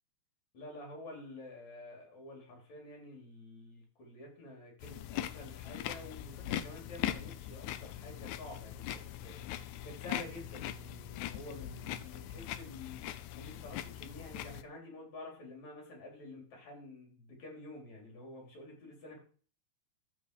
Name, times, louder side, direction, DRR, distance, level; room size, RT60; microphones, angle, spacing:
voice 1, 0.5-19.2, left 2 dB, 65° left, 0 dB, 4.8 m, -49 dB
sound 1, 4.8-14.6, left 12 dB, 85° left, 2.1 m, -41 dB
13.0 x 5.5 x 4.7 m, 0.43 s
omnidirectional pair, 3.5 m